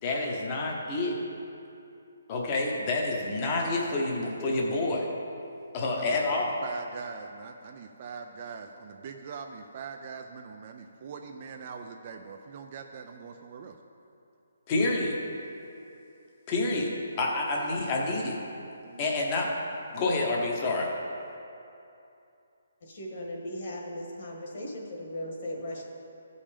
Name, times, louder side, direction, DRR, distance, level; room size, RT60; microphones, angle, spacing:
voice 1, 0.0-1.2 2.3-5.1 5.7-6.5 14.7-15.2 16.5-18.4 19.0-19.5 19.9-20.9, left 2 dB, 20° left, -1 dB, 0.9 m, -28 dB
voice 2, 5.9-13.8, right 5 dB, 25° right, 4 dB, 0.4 m, -42 dB
voice 3, 22.8-25.8, left 1 dB, 35° left, -1 dB, 1.5 m, -38 dB
14.0 x 5.4 x 5.1 m, 2.7 s
hypercardioid pair, 180°, 0 cm